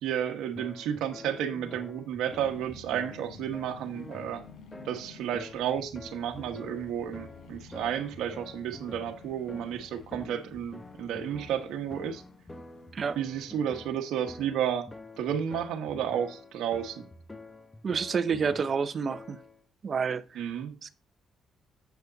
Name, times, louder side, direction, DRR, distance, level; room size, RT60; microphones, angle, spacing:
voice 1, 0.0-4.4 4.8-12.2 13.2-14.9 15.2-17.1 20.3-20.8, right 9 dB, 85° right, 1.1 m, -32 dB
sound 1, 0.5-19.6, left 2 dB, 15° left, 1.3 m, -47 dB
sound 2, 2.2-13.5, left 5 dB, 75° left, 3.5 m, -52 dB
voice 2, 17.8-19.4 19.8-20.4 20.8-20.9, right 6 dB, 45° right, 0.7 m, -29 dB
8.3 x 7.3 x 3.9 m
cardioid pair, 90°, 0 cm